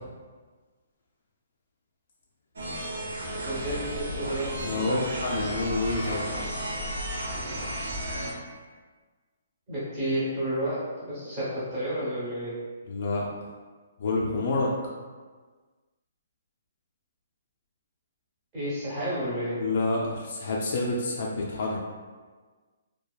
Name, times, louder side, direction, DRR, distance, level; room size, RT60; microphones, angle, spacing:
sound 1, 2.6-8.3, right 1 dB, 80° right, 0.6 m, -33 dB
voice 1, 3.4-5.0 9.7-12.6 18.5-19.6, right 1 dB, 20° right, -10 dB, 0.9 m, -31 dB
voice 2, 4.6-6.3 12.9-13.3 14.0-14.7 19.6-21.8, left 2 dB, 40° left, -2 dB, 0.3 m, -28 dB
2.8 x 2.2 x 2.3 m, 1.4 s
hypercardioid pair, 175°, 0 cm